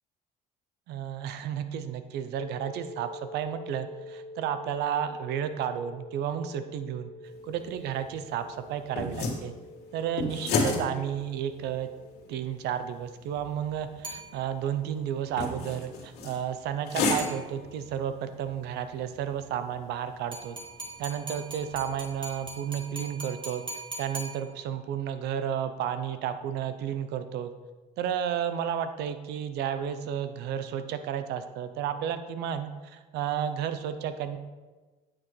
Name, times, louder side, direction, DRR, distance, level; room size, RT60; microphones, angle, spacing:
voice 1, 0.9-7.1 7.5-9.5 9.9-11.9 12.3-20.6 21.0-23.6 24.0-27.5 28.0-34.4, right 9 dB, 80° right, 10 dB, 0.6 m, -32 dB
sound 1, 2.4-12.3, left 2 dB, 30° left, 0.6 m, -46 dB
sound 2, 7.3-23.1, left 3 dB, 80° left, 1.9 m, -36 dB
sound 3, 14.0-14.9 17.2-17.9 20.3-24.9, right 2 dB, 30° right, 1.5 m, -42 dB
8.9 x 6.0 x 3.2 m, 1.3 s
cardioid pair, 110°, 17 cm